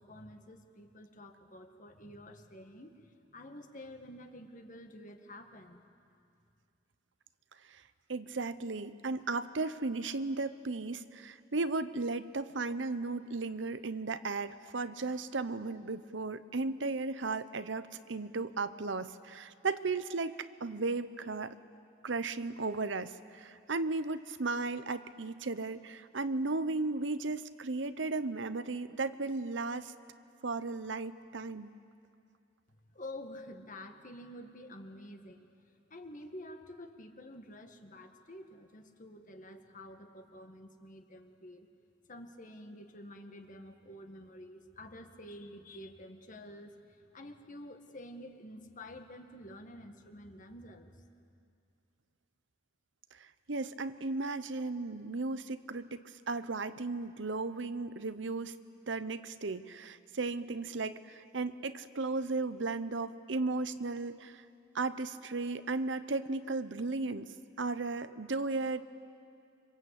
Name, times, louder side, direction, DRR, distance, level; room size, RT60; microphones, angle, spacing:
voice 1, 0.0-5.8 32.9-35.5 35.9-41.7 42.1-51.1, left 1 dB, 45° left, 6 dB, 1.8 m, -49 dB
voice 2, 8.1-21.5 22.0-29.9 30.4-31.7 53.1-58.5 58.9-64.4 64.7-68.9, right 3 dB, 75° right, 12 dB, 0.9 m, -35 dB
26.5 x 25.0 x 8.4 m, 2.4 s
head